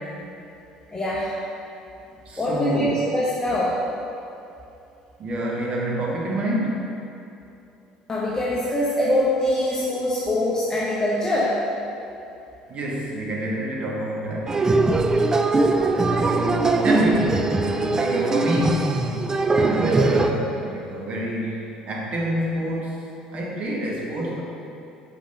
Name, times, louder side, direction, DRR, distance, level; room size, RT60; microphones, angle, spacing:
voice 1, 0.9-1.4 2.4-3.8 8.1-11.6, left 1 dB, 20° left, -6 dB, 0.9 m, -23 dB
voice 2, 2.2-3.1 5.2-6.8 12.7-14.6 16.2-19.1 19.5-24.4, right 1 dB, 45° right, -3 dB, 1.3 m, -27 dB
sound 1, 14.5-20.3, right 3 dB, 20° right, 0.4 m, -21 dB
5.9 x 5.2 x 3.3 m, 2.8 s
figure-of-eight pair, 60°, 3 cm